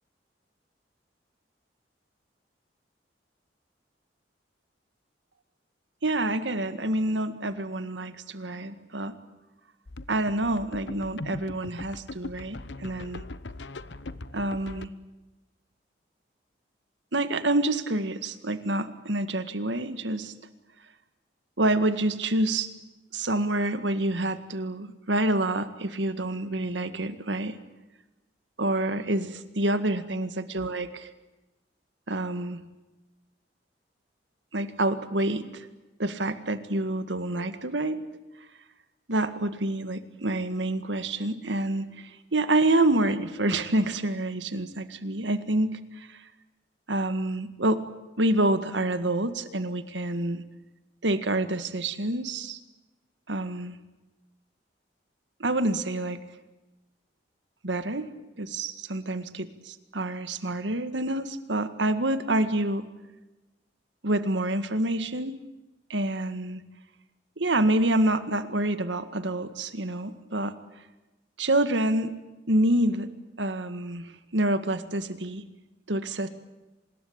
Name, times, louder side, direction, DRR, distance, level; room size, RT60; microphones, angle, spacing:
voice 1, 6.0-9.2 10.1-13.2 14.3-14.9 17.1-20.3 21.6-22.7 23.1-27.6 28.6-31.1 32.1-32.6 34.5-35.7 36.0-38.0 39.1-46.2 46.9-47.8 48.2-50.4 51.0-52.6 53.3-53.8 55.4-56.2 57.6-58.1 58.4-62.8 64.0-65.4 65.9-66.6 67.4-70.5 71.4-72.1 72.5-73.1 73.4-75.4 75.9-76.3, right 1 dB, 85° right, 10 dB, 1.9 m, -27 dB
sound 1, 9.9-14.9, left 2 dB, 75° left, 1.0 m, -40 dB
25.0 x 21.0 x 8.8 m, 1.1 s
head